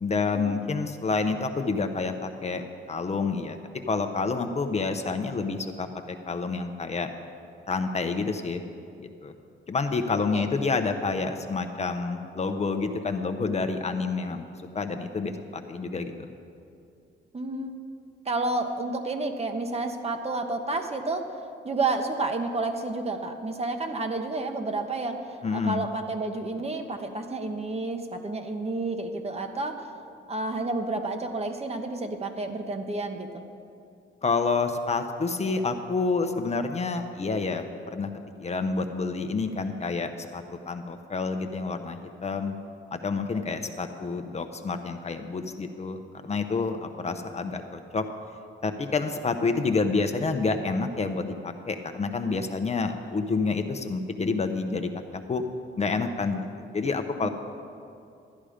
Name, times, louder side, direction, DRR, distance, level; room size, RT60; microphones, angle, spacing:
voice 1, 0.0-3.6 3.9-5.9 6.2-7.1 7.7-8.6 9.0-9.3 9.7-14.4 14.7-16.3 25.4-25.8 34.2-38.1 38.4-42.5 42.9-48.0 48.6-55.4 55.8-57.3, left 4 dB, 30° left, 6 dB, 0.7 m, -28 dB
voice 2, 17.3-17.7 18.2-21.3 21.6-29.9 30.3-33.4 57.2-57.3, right 2 dB, 30° right, 5 dB, 1.1 m, -30 dB
12.5 x 9.9 x 5.0 m, 2.5 s
cardioid pair, 85°, 20 cm